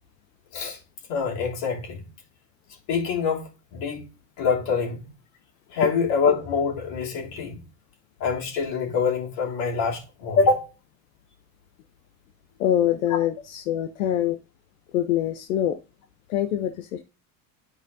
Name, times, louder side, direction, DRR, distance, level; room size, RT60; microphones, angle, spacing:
voice 1, 1.1-2.0 2.9-4.0 4.4-5.1 5.7-7.6 8.2-10.7 13.1-13.2, left 5 dB, 60° left, 3.3 m, -25 dB
voice 2, 12.6-14.4 14.9-15.8 16.3-17.0, left 11 dB, 85° left, 0.8 m, -24 dB
12.0 x 5.0 x 2.7 m
supercardioid pair, 100°, 40 cm